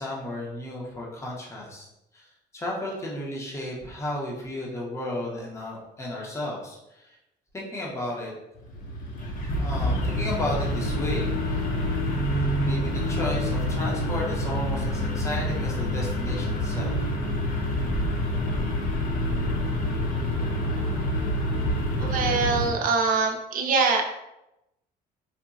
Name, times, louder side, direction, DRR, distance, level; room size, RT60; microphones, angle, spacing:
voice 1, 0.0-1.9 2.1-2.3 2.5-7.2 7.5-8.3 9.6-11.7 12.6-16.9, left 1 dB, 15° left, -3 dB, 0.6 m, -33 dB
sound 1, 8.6-22.7, left 1 dB, 55° left, 0.7 m, -27 dB
voice 2, 22.0-24.0, right 4 dB, 55° right, 2 dB, 0.6 m, -23 dB
3.9 x 2.1 x 2.4 m, 0.90 s
cardioid pair, 110°, 17 cm